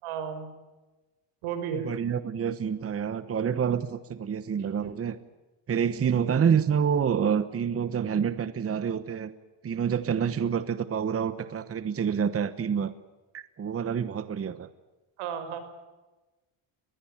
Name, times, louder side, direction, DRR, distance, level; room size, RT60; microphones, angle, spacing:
voice 1, 0.0-0.5 1.4-1.9 4.6-4.9 15.2-15.6, right 7 dB, 80° right, 9 dB, 5.2 m, -34 dB
voice 2, 1.8-5.2 5.7-9.3 9.6-12.9 13.3-14.7, right 7 dB, 30° right, 13 dB, 1.1 m, -27 dB
21.5 x 21.0 x 8.8 m, 1.1 s
cardioid pair, 120°, 48 cm